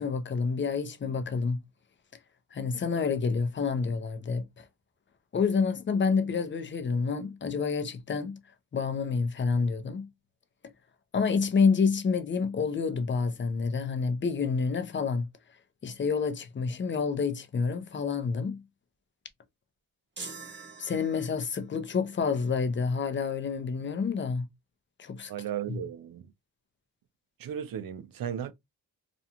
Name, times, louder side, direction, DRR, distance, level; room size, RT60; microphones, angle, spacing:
voice 1, 0.0-1.6 2.5-4.6 5.3-8.4 8.7-10.1 11.1-15.3 15.8-18.6 20.8-24.5 25.0-25.3 25.7-25.8, left 5 dB, 30° left, 0.6 m, -28 dB
sound 1, 20.2-21.6, right 4 dB, 30° right, 0.8 m, -44 dB
voice 2, 25.3-26.3 27.4-28.5, right 9 dB, 60° right, 0.6 m, -35 dB
2.5 x 2.3 x 2.8 m
cardioid pair, 80°, 39 cm